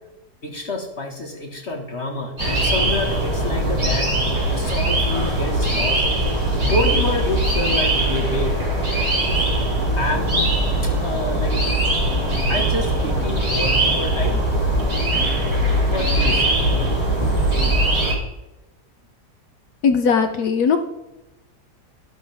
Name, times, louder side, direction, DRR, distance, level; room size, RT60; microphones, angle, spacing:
voice 1, 0.4-4.1 4.5-6.0 6.6-8.6 9.9-10.5 10.8-11.6 12.5-14.4 15.9-16.6, left 2 dB, 40° left, 0 dB, 1.9 m, -27 dB
sound 1, 2.4-18.1, right 1 dB, 80° right, 5.2 m, -20 dB
voice 2, 19.8-20.8, left 6 dB, 70° left, 6 dB, 1.3 m, -18 dB
12.5 x 11.5 x 3.5 m, 1.0 s
omnidirectional pair, 1.8 m